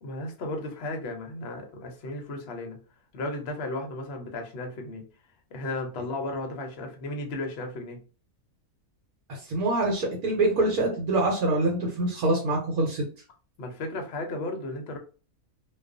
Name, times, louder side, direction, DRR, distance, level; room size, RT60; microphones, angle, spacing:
voice 1, 0.0-2.8 3.1-5.0 5.5-8.0 13.6-15.0, left 2 dB, 55° left, 3 dB, 0.7 m, -34 dB
voice 2, 9.3-13.0, right 2 dB, 75° right, 0 dB, 1.1 m, -25 dB
2.3 x 2.3 x 2.4 m, 0.37 s
omnidirectional pair, 1.6 m